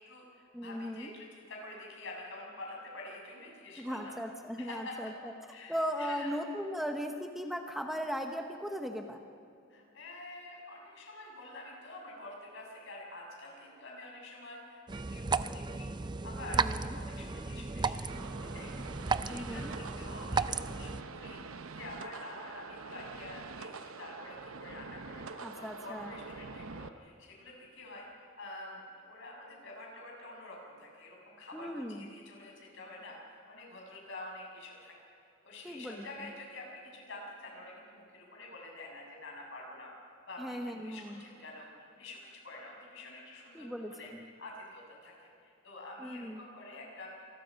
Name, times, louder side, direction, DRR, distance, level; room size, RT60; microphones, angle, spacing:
voice 1, 0.0-4.1 4.6-4.9 5.5-6.3 9.7-15.9 16.2-16.7 16.9-18.8 19.2-33.2 33.5-34.9 35.4-40.0 40.3-41.7 42.0-44.1 44.4-47.1, left 2 dB, 65° left, -1 dB, 6.5 m, -48 dB
voice 2, 0.5-1.1 3.8-5.3 5.7-9.2 16.5-17.0 19.3-19.7 25.4-26.1 31.5-32.1 35.6-36.3 40.4-41.2 43.5-44.3 46.0-46.4, equal, ahead, 3 dB, 1.0 m, -38 dB
sound 1, 14.9-21.0, right 4 dB, 20° right, 0.5 m, -34 dB
sound 2, 18.1-26.9, right 4 dB, 85° right, 0.9 m, -46 dB
27.0 x 20.5 x 5.2 m, 2.7 s
head